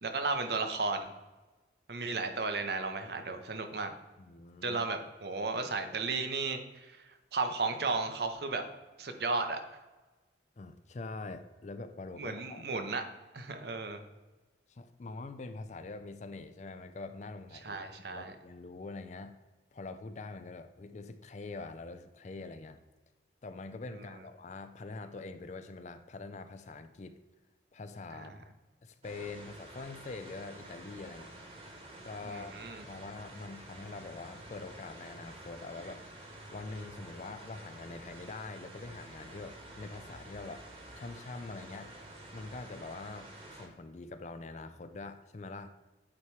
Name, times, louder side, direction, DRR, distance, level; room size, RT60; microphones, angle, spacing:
voice 1, 0.0-1.1 1.9-3.9 4.6-8.6 9.0-9.6 12.2-13.0 13.3-14.0 17.6-18.3 23.9-24.0 28.1-28.4 32.2-32.8, right 3 dB, 60° right, 7 dB, 0.7 m, -34 dB
voice 2, 4.2-4.8 10.6-12.6 14.7-17.8 18.1-19.4 19.7-22.8 23.4-27.2 27.7-28.3 28.8-31.3 32.0-32.5 32.9-36.0 36.5-40.6 41.0-41.9 42.3-45.7, left 3 dB, 40° left, 10 dB, 0.4 m, -44 dB
sound 1, 29.0-43.7, right 1 dB, 35° right, 1.2 m, -50 dB
8.6 x 3.1 x 4.6 m, 1.2 s
head